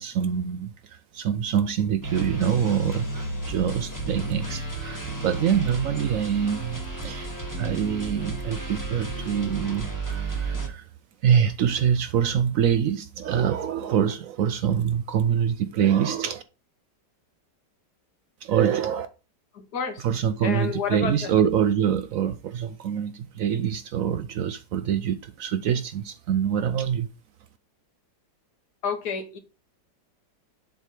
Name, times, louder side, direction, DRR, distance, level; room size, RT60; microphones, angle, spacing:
voice 1, 0.0-7.3 7.6-10.8 11.2-16.4 18.4-19.1 20.0-27.1, right 8 dB, 75° right, 0.8 m, -25 dB
sound 1, 2.0-10.7, right 2 dB, 10° left, 1.1 m, -33 dB
voice 2, 19.5-20.1 20.4-21.3 28.8-29.4, left 6 dB, 65° left, 1.6 m, -30 dB
7.3 x 3.2 x 5.3 m
omnidirectional pair, 1.9 m